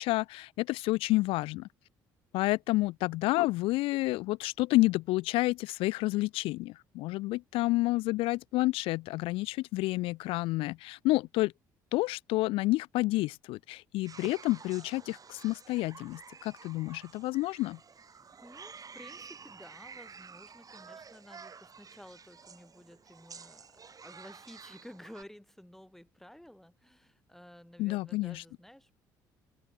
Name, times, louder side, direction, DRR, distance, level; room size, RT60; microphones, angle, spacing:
voice 1, 0.0-1.7 2.3-11.5 11.9-17.8 27.8-28.4, left 20 dB, 65° left, 0.4 m, -29 dB
sound 1, 14.0-25.2, right 5 dB, 35° right, 5.0 m, -51 dB
voice 2, 18.4-28.9, equal, 5° left, 7.5 m, -53 dB
open air
hypercardioid pair, 55°, 10 cm